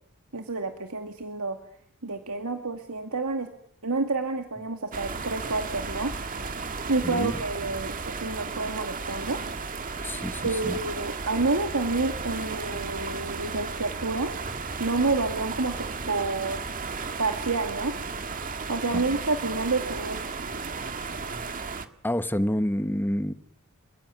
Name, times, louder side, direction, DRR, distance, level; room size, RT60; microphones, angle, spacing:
voice 1, 0.3-1.6 2.0-3.5 3.8-6.1 6.9-9.4 10.4-14.3 14.8-16.6 17.2-17.9 18.7-20.4, right 3 dB, 75° right, 2.4 m, -29 dB
sound 1, 4.9-21.9, right 4 dB, 40° right, 1.8 m, -34 dB
voice 2, 7.0-7.4 10.0-10.8 18.9-19.2 22.0-23.3, equal, 10° left, 1.2 m, -28 dB
30.0 x 16.5 x 9.5 m
head